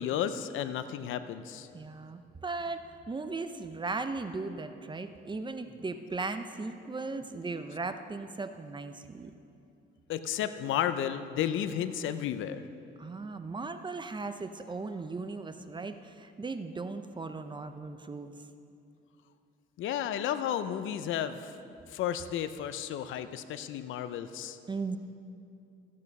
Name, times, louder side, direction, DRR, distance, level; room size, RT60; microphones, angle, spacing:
voice 1, 0.0-1.7 10.1-12.6 19.8-21.6 21.9-24.6, left 10 dB, 80° left, 11 dB, 0.6 m, -33 dB
voice 2, 1.7-9.3 13.0-18.5 21.8-21.9 24.7-25.0, right 3 dB, 25° right, 9 dB, 0.6 m, -37 dB
15.0 x 8.4 x 5.4 m, 2.6 s
cardioid pair, 90°, 20 cm